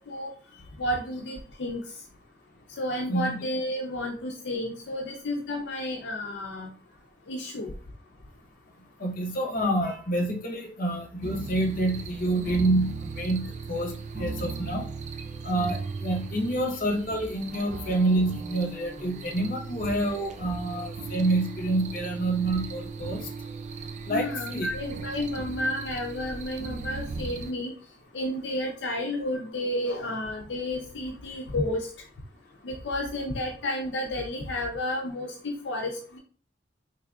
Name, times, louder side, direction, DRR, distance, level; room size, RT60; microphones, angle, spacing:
voice 1, 0.8-1.8 2.8-6.7 7.3-7.7 24.1-27.7 28.1-31.9 32.6-36.2, left 1 dB, 70° left, 1 dB, 0.5 m, -31 dB
voice 2, 9.0-14.9 15.4-23.3 24.1-24.7, right 1 dB, 50° left, 2 dB, 0.9 m, -27 dB
sound 1, 11.2-27.5, right 4 dB, 40° right, 0.4 m, -37 dB
3.7 x 3.2 x 2.3 m, 0.40 s
head